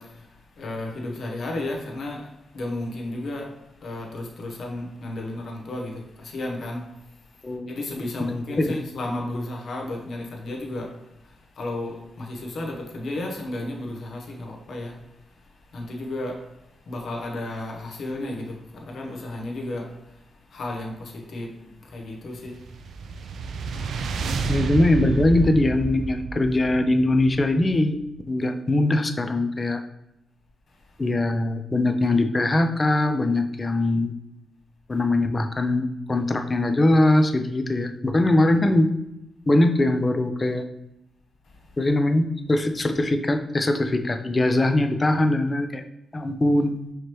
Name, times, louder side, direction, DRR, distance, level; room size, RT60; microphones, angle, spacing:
voice 1, 0.0-24.5 30.7-31.0 41.4-41.8, left 2 dB, 65° left, 0.9 m, -34 dB
voice 2, 7.4-7.7 8.7-8.8 24.5-28.0 28.3-29.8 31.0-34.1 34.9-38.9 39.5-40.6 41.8-45.8 46.1-46.7, left 1 dB, 30° left, 0.4 m, -21 dB
sound 1, 22.5-27.9, right 4 dB, 80° right, 0.3 m, -30 dB
4.9 x 3.0 x 3.0 m
cardioid pair, 70°, 0 cm